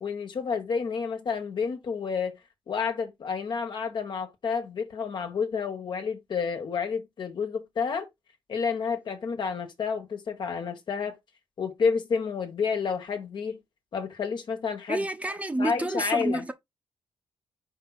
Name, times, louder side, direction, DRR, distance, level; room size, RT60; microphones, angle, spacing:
voice 1, 0.0-2.4 2.7-8.1 8.5-11.2 11.6-13.6 13.9-15.0 15.6-16.4, left 5 dB, 55° left, 1.6 m, -30 dB
voice 2, 14.9-16.5, right 2 dB, 15° right, 1.0 m, -29 dB
5.0 x 4.7 x 4.2 m
cardioid pair, 95°, 9 cm